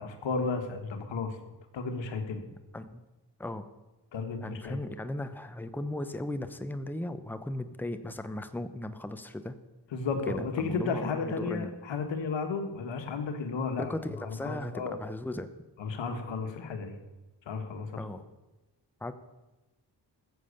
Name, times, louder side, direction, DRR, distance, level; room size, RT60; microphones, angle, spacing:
voice 1, 0.0-2.4 4.1-4.8 9.9-13.9 14.2-14.9 15.8-16.9 17.4-18.0, left 4 dB, 85° left, 6 dB, 1.5 m, -33 dB
voice 2, 2.7-3.0 3.4-3.7 4.4-9.6 10.3-11.7 13.8-15.5 18.0-18.2 19.0-19.1, left 1 dB, 5° left, 10 dB, 0.9 m, -37 dB
14.5 x 7.6 x 6.8 m, 1.1 s
cardioid pair, 60°, 44 cm